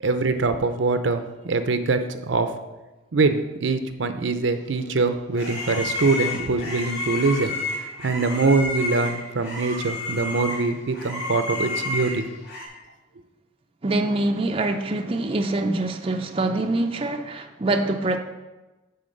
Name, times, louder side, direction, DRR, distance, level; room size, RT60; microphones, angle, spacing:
voice 1, 0.0-2.5 3.1-7.6 8.0-12.3, right 3 dB, 75° right, 9 dB, 0.6 m, -23 dB
Content warning, 4.7-12.7, left 3 dB, 60° left, 2.2 m, -31 dB
voice 2, 13.8-18.2, right 2 dB, 30° right, 5 dB, 0.5 m, -24 dB
9.4 x 4.0 x 6.5 m, 1.1 s
head